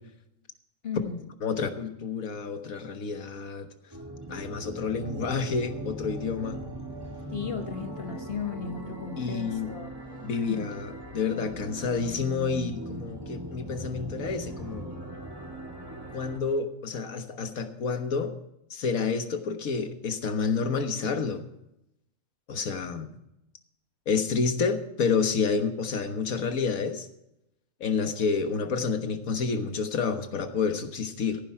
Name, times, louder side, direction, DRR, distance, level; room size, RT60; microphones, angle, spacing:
voice 1, 0.8-1.3 7.3-9.9 10.4-10.7, left 6 dB, 50° left, 6 dB, 1.2 m, -35 dB
voice 2, 1.4-3.7 4.3-6.6 9.2-9.7 10.2-14.9 16.1-18.3 18.7-21.4 22.5-23.1 24.1-27.1 27.8-31.4, left 5 dB, 85° left, 8 dB, 1.7 m, -29 dB
sound 1, 3.9-16.4, right 1 dB, 15° right, 2.2 m, -39 dB
15.0 x 10.0 x 4.8 m, 0.83 s
omnidirectional pair, 1.4 m